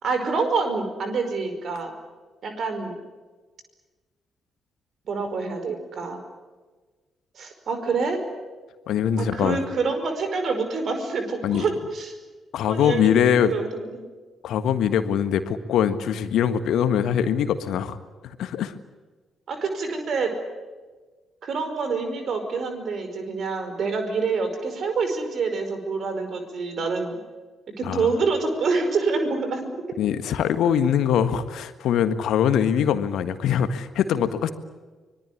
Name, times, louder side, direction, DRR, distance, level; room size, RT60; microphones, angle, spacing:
voice 1, 0.0-1.9 2.4-2.9 5.1-6.2 7.3-8.2 9.2-12.1 12.7-14.0 19.5-20.3 21.4-27.1 27.8-29.8, right 4 dB, 50° right, 7 dB, 5.1 m, -27 dB
voice 2, 8.9-9.6 11.4-11.7 12.5-13.5 14.4-18.0 18.2-18.7 27.8-28.1 30.0-34.5, left 8 dB, 60° left, 12 dB, 1.6 m, -22 dB
25.0 x 22.0 x 8.6 m, 1.3 s
figure-of-eight pair, 40°, 0 cm